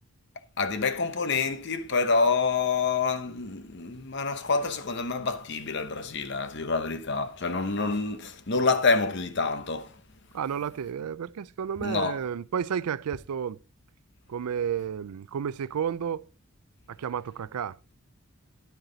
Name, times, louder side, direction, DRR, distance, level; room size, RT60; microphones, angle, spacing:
voice 1, 0.6-10.0 11.8-12.2, left 4 dB, 50° left, 0.9 m, -27 dB
voice 2, 10.3-13.6 14.3-16.3 16.9-17.8, right 8 dB, 90° right, 0.4 m, -31 dB
9.5 x 9.0 x 3.9 m
head